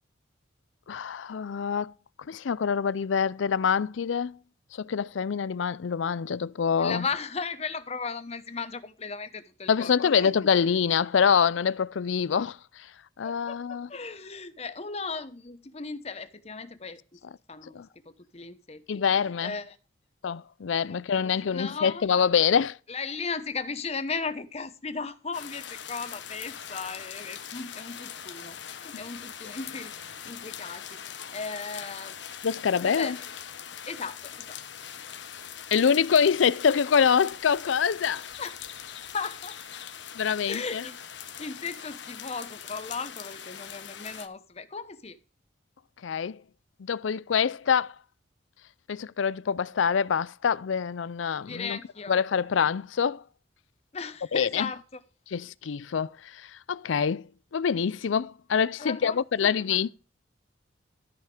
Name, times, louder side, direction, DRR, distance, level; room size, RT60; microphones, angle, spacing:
voice 1, 0.9-1.9 2.3-4.4 4.7-7.1 9.7-12.9 13.2-13.9 17.7-17.9 18.9-19.5 20.2-22.8 32.4-33.2 35.7-38.2 40.1-40.8 46.0-46.4 46.8-47.9 48.9-51.8 52.1-53.2 54.3-54.7 55.3-59.9, left 7 dB, 85° left, 0.5 m, -25 dB
voice 2, 6.8-10.3 13.2-13.6 13.9-17.0 17.5-17.8 18.0-18.8 19.4-19.8 20.9-22.0 22.9-31.0 31.3-32.2 32.8-33.2 33.9-34.6 38.4-38.5 39.1-39.6 40.5-41.0 41.4-45.2 51.4-52.2 53.9-55.0 58.8-59.8, left 4 dB, 35° left, 1.0 m, -36 dB
sound 1, 25.3-44.3, left 9 dB, 70° left, 1.1 m, -42 dB
13.5 x 5.7 x 5.0 m
head